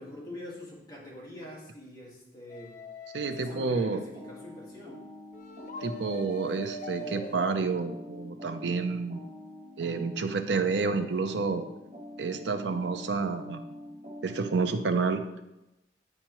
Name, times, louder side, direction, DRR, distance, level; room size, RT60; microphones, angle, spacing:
voice 1, 0.0-2.8 3.2-5.0, left 1 dB, 20° left, -5 dB, 1.7 m, -44 dB
sound 1, 2.5-3.9 5.3-7.6, left 1 dB, 45° left, 0.4 m, -42 dB
voice 2, 3.1-4.0 5.8-9.2 9.8-11.6 12.2-13.6 14.2-15.2, right 4 dB, 80° right, 8 dB, 0.5 m, -29 dB
sound 2, 3.4-14.7, left 1 dB, 35° right, 1.3 m, -45 dB
8.9 x 4.6 x 3.0 m, 0.93 s
head